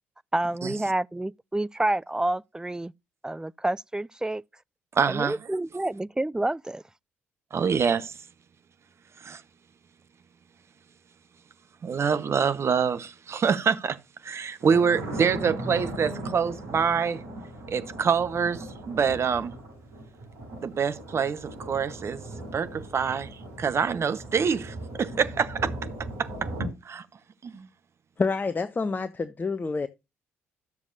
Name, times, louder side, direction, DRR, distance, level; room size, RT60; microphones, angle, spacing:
voice 1, 0.3-2.9 3.2-4.4 5.1-6.8, right 1 dB, 10° right, 0.4 m, -28 dB
voice 2, 4.9-5.4 7.5-8.2 9.2-9.4 11.8-17.2 17.7-19.5 20.6-22.2 22.5-23.3 23.6-25.7 26.2-26.5 26.8-27.0 27.4-27.7, right 6 dB, 45° right, 1.0 m, -26 dB
Thunder, 14.6-26.7, right 1 dB, 70° right, 6.0 m, -38 dB
voice 3, 28.2-29.9, left 4 dB, 30° left, 0.8 m, -28 dB
13.0 x 7.1 x 2.6 m
hypercardioid pair, 50°, 7 cm